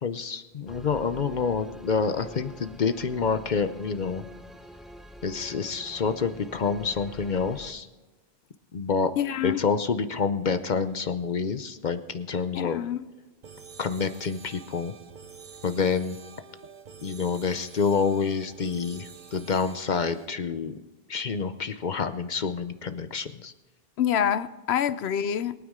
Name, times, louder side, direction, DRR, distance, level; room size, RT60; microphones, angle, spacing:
voice 1, 0.0-4.2 5.2-7.9 8.7-9.1 9.4-12.8 13.8-14.9 15.6-16.2 17.0-20.8 21.1-23.5, left 5 dB, 50° left, 10 dB, 0.8 m, -28 dB
sound 1, 0.7-7.7, equal, ahead, 0.5 m, -46 dB
voice 2, 9.2-9.6 12.5-13.0 24.0-25.5, left 9 dB, 90° left, 14 dB, 0.9 m, -26 dB
sound 2, 13.4-20.3, right 6 dB, 50° right, 0.9 m, -48 dB
22.5 x 9.3 x 3.7 m, 1.2 s
omnidirectional pair, 1.0 m